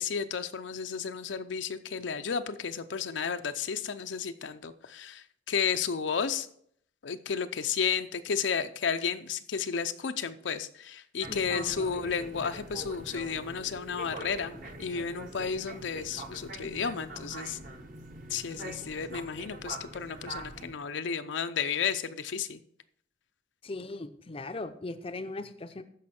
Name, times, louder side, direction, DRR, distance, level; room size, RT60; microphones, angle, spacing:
voice 1, 0.0-6.5 7.0-14.5 14.8-17.6 18.3-22.6, left 6 dB, 75° left, 9 dB, 0.6 m, -32 dB
sound 1, 11.2-20.7, right 1 dB, 45° right, 1.2 m, -43 dB
voice 2, 11.3-11.8 23.6-25.8, left 2 dB, 30° left, 8 dB, 0.5 m, -39 dB
14.0 x 5.5 x 4.3 m, 0.66 s
head